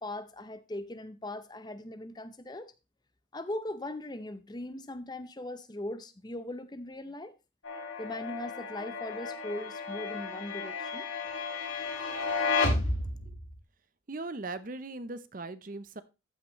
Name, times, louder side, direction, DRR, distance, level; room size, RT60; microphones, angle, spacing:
voice 1, 0.0-2.7 3.3-7.3 8.0-11.1, left 1 dB, 20° left, 0.6 m, -39 dB
sound 1, 7.6-13.6, left 3 dB, 85° left, 2.2 m, -33 dB
voice 2, 14.1-16.0, right 2 dB, 45° right, 0.7 m, -39 dB
14.0 x 6.0 x 3.1 m
head